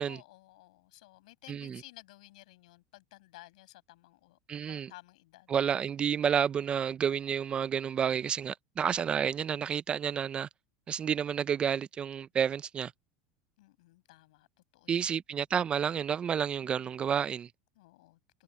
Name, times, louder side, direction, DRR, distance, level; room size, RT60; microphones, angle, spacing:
voice 1, 0.1-5.6 13.6-14.5 14.7-15.2 16.6-17.1 17.8-18.2, left 19 dB, 85° left, 7.7 m, -55 dB
voice 2, 1.5-1.8 4.5-4.9 5.5-10.5 10.9-12.9 14.9-17.5, right 8 dB, 25° right, 0.4 m, -30 dB
supercardioid pair, 130°, 4 cm